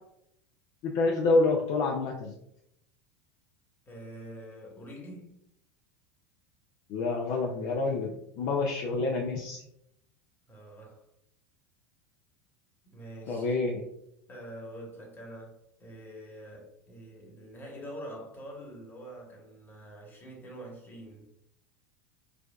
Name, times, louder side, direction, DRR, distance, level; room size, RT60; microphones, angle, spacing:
voice 1, 0.8-2.3 6.9-9.6 13.3-13.8, left 3 dB, 50° left, 1 dB, 0.5 m, -28 dB
voice 2, 3.9-5.3 10.5-11.1 12.8-13.5 14.3-21.3, right 1 dB, 25° left, 0 dB, 1.2 m, -45 dB
4.7 x 2.2 x 2.3 m, 0.76 s
hypercardioid pair, 80°, 8 cm